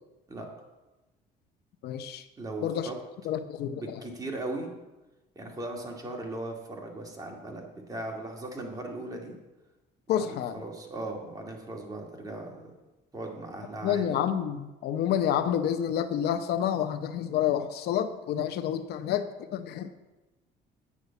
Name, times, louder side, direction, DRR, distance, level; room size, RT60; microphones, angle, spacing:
voice 1, 1.8-2.2 2.6-2.9 3.2-4.0 10.1-10.6 13.8-19.3 19.5-19.9, left 9 dB, 75° left, 10 dB, 0.7 m, -29 dB
voice 2, 2.4-3.0 3.7-4.7 5.4-9.4 10.2-12.7 13.1-14.2, right 2 dB, 20° right, 1 dB, 2.2 m, -38 dB
8.4 x 6.3 x 8.2 m, 1.1 s
cardioid pair, 110°, 17 cm